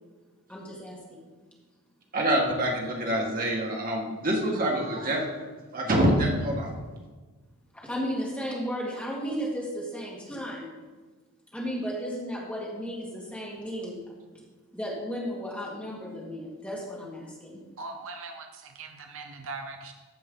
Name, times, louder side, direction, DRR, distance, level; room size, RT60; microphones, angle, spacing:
voice 1, 0.5-1.3 7.7-10.7 11.5-14.0 14.7-17.6, equal, 5° left, -4 dB, 1.9 m, -34 dB
voice 2, 2.1-5.5 5.7-6.8, right 1 dB, 40° right, -1 dB, 1.6 m, -26 dB
voice 3, 17.8-19.9, right 3 dB, 60° right, 5 dB, 0.6 m, -40 dB
14.5 x 5.1 x 3.8 m, 1.3 s
head